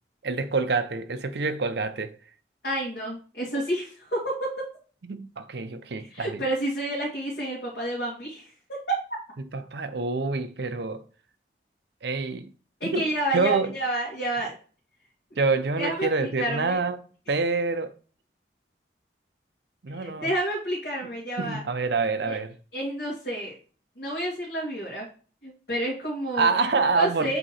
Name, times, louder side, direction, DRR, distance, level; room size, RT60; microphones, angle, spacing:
voice 1, 0.2-2.2 3.5-3.6 5.1-6.4 9.5-11.0 12.0-12.5 12.9-13.1 13.3-13.7 15.4-17.0 17.3-17.9 19.8-20.3 21.4-22.5 26.4-27.4, right 4 dB, 70° right, 0.6 m, -26 dB
voice 2, 2.6-4.6 6.0-8.5 8.9-9.0 12.8-14.5 15.8-16.8 19.9-21.6 22.3-22.4 22.7-23.5 24.0-25.1 25.4-26.5 27.0-27.4, right 1 dB, 60° left, 2.0 m, -29 dB
7.7 x 2.9 x 4.2 m
head